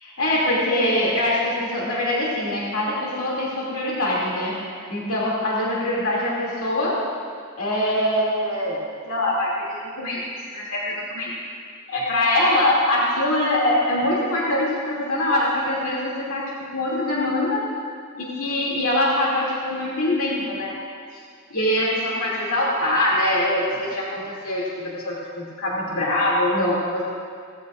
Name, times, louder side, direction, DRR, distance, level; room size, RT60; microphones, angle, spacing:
voice 1, 0.2-4.5 4.9-7.0 7.6-10.2 10.5-11.3 11.9-16.4 16.7-17.6 18.1-20.7 21.5-27.0, left 1 dB, 65° left, -5 dB, 2.6 m, -23 dB
17.5 x 15.0 x 2.5 m, 2.2 s
head